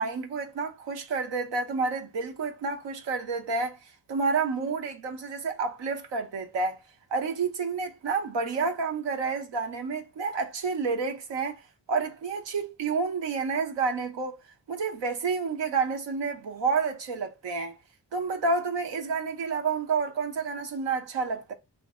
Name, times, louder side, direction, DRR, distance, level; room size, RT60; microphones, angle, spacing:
voice 1, 0.0-6.8 7.1-11.6 11.9-14.4 14.7-17.8 18.1-21.5, right 4 dB, 80° right, 0.8 m, -29 dB
2.6 x 2.0 x 3.4 m
cardioid pair, 50°, 42 cm